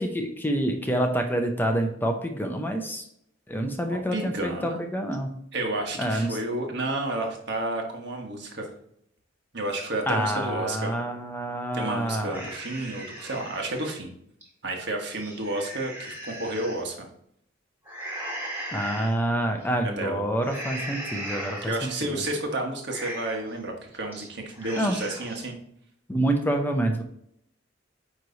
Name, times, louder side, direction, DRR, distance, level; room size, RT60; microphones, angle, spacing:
voice 1, 0.0-3.0 3.5-5.3 6.0-6.3 10.1-12.5 18.7-21.7 22.0-22.2 24.8-25.0 26.1-27.0, right 1 dB, 10° left, 4 dB, 0.7 m, -27 dB
voice 2, 4.1-4.8 5.5-8.7 9.5-10.9 11.7-14.1 14.6-17.1 19.8-20.2 21.6-25.6, right 2 dB, 65° right, 2 dB, 1.4 m, -31 dB
sound 1, 12.3-13.9 14.4-14.5 15.0-16.8 17.8-19.1 19.6-19.9 20.4-22.0 22.3-22.4 22.8-23.5 23.9-24.3 24.5-25.4, right 1 dB, 10° right, 1.9 m, -38 dB
9.4 x 3.2 x 4.0 m, 0.70 s
head